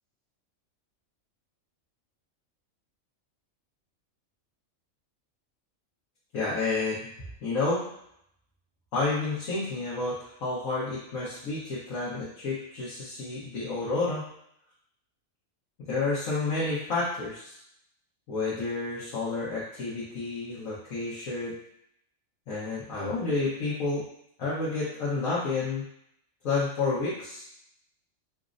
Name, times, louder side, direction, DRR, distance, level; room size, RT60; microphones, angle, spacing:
voice 1, 6.3-7.0 7.4-7.9 8.9-10.1 10.4-14.3 15.9-17.6 18.3-21.5 22.5-24.0 24.4-25.8 26.4-27.4, left 3 dB, 75° left, -9 dB, 1.4 m, -30 dB
5.0 x 2.1 x 2.5 m, 0.72 s
omnidirectional pair, 1.4 m